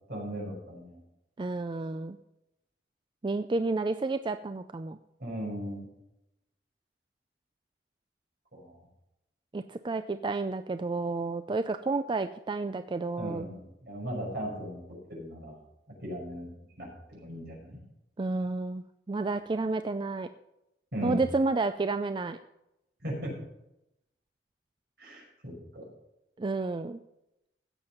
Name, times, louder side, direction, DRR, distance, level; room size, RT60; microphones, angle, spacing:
voice 1, 0.1-1.0 5.2-5.9 8.5-8.8 13.2-15.6 15.9-16.5 16.8-17.8 20.9-21.3 23.0-23.3 25.0-25.9, equal, 65° right, -2 dB, 5.8 m, -38 dB
voice 2, 1.4-2.2 3.2-5.0 9.5-13.5 18.2-20.3 21.0-22.4 26.4-27.0, right 3 dB, 30° right, 10 dB, 0.4 m, -31 dB
16.0 x 7.1 x 5.8 m, 0.87 s
head